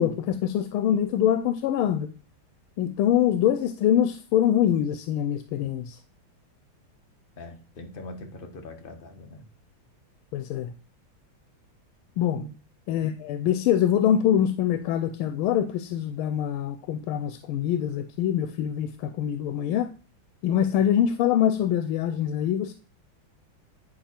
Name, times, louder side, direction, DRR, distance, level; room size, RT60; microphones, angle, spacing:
voice 1, 0.0-2.1 2.8-6.0 10.3-10.7 12.2-12.4 12.9-19.9 20.4-22.7, left 10 dB, 90° left, 1.4 m, -24 dB
voice 2, 7.4-9.4 12.3-12.5, left 2 dB, 35° left, 1.0 m, -42 dB
9.2 x 4.6 x 4.3 m
omnidirectional pair, 2.3 m